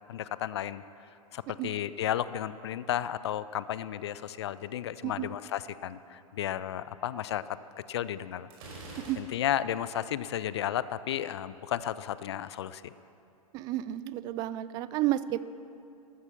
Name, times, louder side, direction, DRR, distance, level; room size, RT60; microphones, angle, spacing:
voice 1, 0.1-0.8 1.3-7.4 7.9-8.5 9.2-12.9, left 11 dB, 45° left, 16 dB, 0.5 m, -33 dB
Gunshot gunfire, 8.5-9.7, right 2 dB, 40° right, 4.9 m, -46 dB
voice 2, 13.5-15.4, right 14 dB, 20° right, 16 dB, 0.4 m, -31 dB
13.5 x 13.0 x 7.1 m, 2.6 s
figure-of-eight pair, 110°, 19 cm